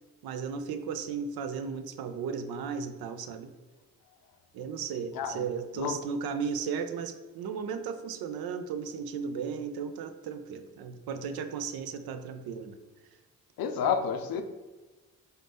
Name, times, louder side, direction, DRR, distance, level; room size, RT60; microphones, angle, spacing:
voice 1, 0.2-3.5 4.5-12.8, right 6 dB, 70° right, 9 dB, 0.5 m, -35 dB
voice 2, 13.6-14.4, left 7 dB, 65° left, 8 dB, 0.5 m, -29 dB
3.8 x 2.0 x 3.4 m, 1.2 s
supercardioid pair, 50°, 38 cm